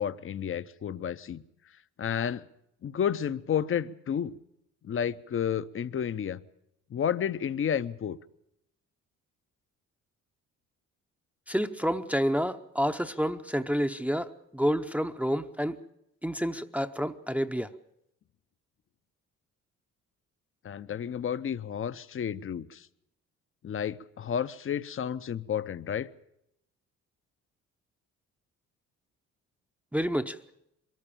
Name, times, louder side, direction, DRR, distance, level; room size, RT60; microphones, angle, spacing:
voice 1, 0.0-1.4 2.0-2.5 2.8-4.4 4.8-6.4 6.9-8.2 20.6-22.9 23.6-26.1, left 8 dB, 45° left, 0.8 m, -31 dB
voice 2, 11.5-15.8 16.2-17.7 29.9-30.4, equal, 5° right, 0.8 m, -29 dB
23.0 x 14.0 x 8.6 m
cardioid pair, 90°, 30 cm